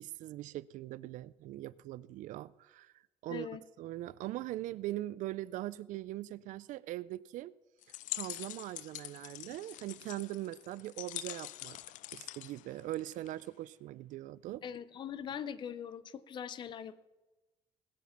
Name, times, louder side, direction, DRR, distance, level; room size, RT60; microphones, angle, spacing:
voice 1, 0.0-2.9 3.2-3.5 3.8-7.5 8.1-11.8 12.1-14.6, right 15 dB, 80° right, 0.4 m, -41 dB
voice 2, 3.3-3.6 14.6-17.0, left 8 dB, 35° left, 0.6 m, -41 dB
sound 1, 7.8-13.5, left 16 dB, 85° left, 0.4 m, -45 dB
20.0 x 7.4 x 5.8 m
cardioid pair, 170°, 13 cm